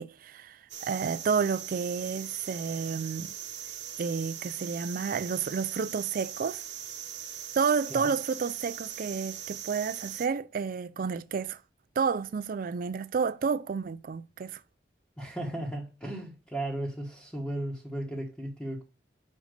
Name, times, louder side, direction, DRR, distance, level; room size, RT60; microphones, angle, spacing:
voice 1, 0.0-3.3 4.0-6.6 7.5-11.6 12.0-14.6, right 5 dB, 55° right, 0.4 m, -30 dB
sound 1, 0.7-10.3, right 10 dB, 80° right, 1.0 m, -40 dB
voice 2, 15.2-18.8, right 1 dB, 10° left, 1.5 m, -35 dB
5.2 x 5.0 x 6.4 m
head